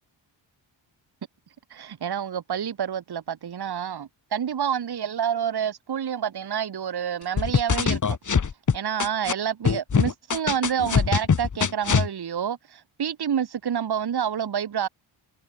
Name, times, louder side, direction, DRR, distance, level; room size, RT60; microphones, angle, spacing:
voice 1, 1.7-8.2 8.7-14.9, right 8 dB, 55° right, 1.7 m, -28 dB
sound 1, 7.4-9.3 9.6-12.1, left 6 dB, 40° left, 1.9 m, -22 dB
wide cardioid pair, 155°, 47 cm